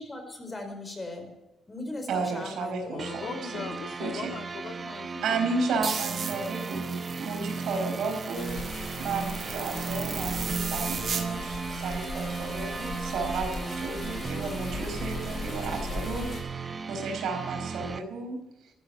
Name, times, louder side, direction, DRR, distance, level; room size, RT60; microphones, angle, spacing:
voice 1, 0.0-1.3 1.7-3.0, left 2 dB, 20° left, 6 dB, 4.8 m, -38 dB
voice 2, 2.1-3.6 4.0-4.3 5.2-8.6 9.0-18.4, right 4 dB, 75° right, 4 dB, 4.7 m, -33 dB
voice 3, 2.9-5.8, left 6 dB, 65° left, 5 dB, 2.1 m, -39 dB
sound 1, 3.0-18.0, right 4 dB, 35° right, 0.9 m, -36 dB
sound 2, 5.8-11.3, right 6 dB, 50° right, 1.8 m, -36 dB
sound 3, 8.3-16.4, left 3 dB, 45° left, 5.1 m, -38 dB
14.5 x 12.5 x 7.0 m, 0.94 s
cardioid pair, 90°, 0 cm